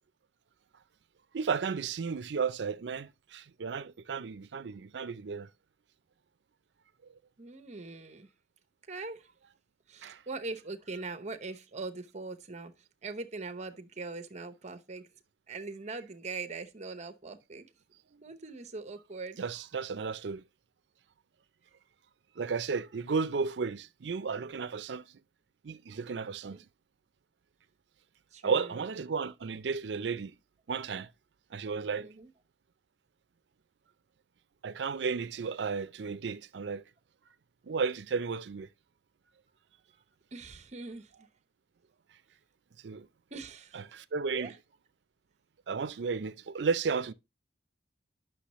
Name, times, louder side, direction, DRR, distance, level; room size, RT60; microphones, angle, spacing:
voice 1, 1.3-5.5 10.0-10.2 19.4-20.4 22.4-25.1 25.6-26.6 28.4-30.3 30.7-31.1 31.5-32.1 34.6-36.8 37.7-38.7 42.8-43.1 43.9-44.5 45.7-47.1, right 5 dB, 75° right, 0.5 m, -33 dB
voice 2, 7.4-8.3 8.9-9.3 9.9-15.1 15.5-17.7 18.2-19.4 26.5-26.6 28.3-28.8 32.0-32.3 40.3-41.3 43.3-44.0 44.3-44.6, right 3 dB, 40° right, 0.9 m, -42 dB
10.0 x 6.2 x 3.1 m
head